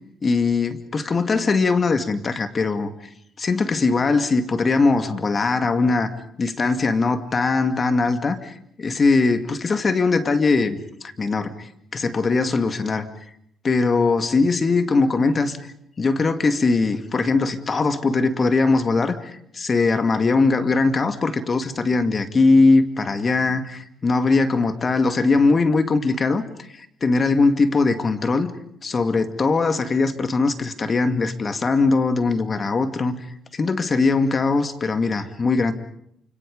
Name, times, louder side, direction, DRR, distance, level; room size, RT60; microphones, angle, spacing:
voice 1, 0.2-2.9 3.4-6.1 6.4-10.8 11.2-13.1 13.6-15.6 16.0-26.4 26.7-28.5 28.8-33.2 33.5-35.7, left 3 dB, 40° left, 9 dB, 2.3 m, -20 dB
28.5 x 26.5 x 5.4 m, 0.69 s
cardioid pair, 90°, 0 cm